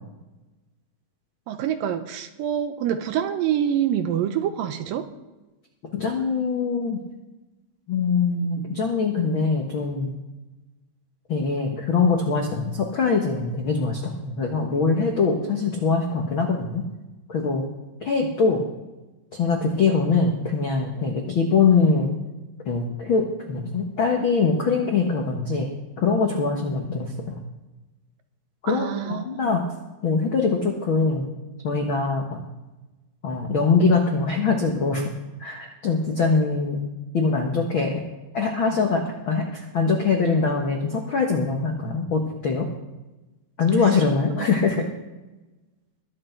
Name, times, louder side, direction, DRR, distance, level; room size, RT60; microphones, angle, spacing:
voice 1, 1.5-5.1 28.7-29.5 44.4-44.5, right 9 dB, 75° right, 9 dB, 2.3 m, -26 dB
voice 2, 5.9-7.0 7.9-10.1 11.3-16.8 17.3-17.6 18.0-18.6 19.3-22.1 22.7-25.7 26.0-27.4 28.6-29.6 30.0-31.3 31.6-32.4 33.2-35.1 35.4-36.8 37.1-38.0 38.3-42.7 43.6-44.8, left 4 dB, 70° left, 1 dB, 1.2 m, -23 dB
22.0 x 8.1 x 4.5 m, 1.1 s
omnidirectional pair, 4.4 m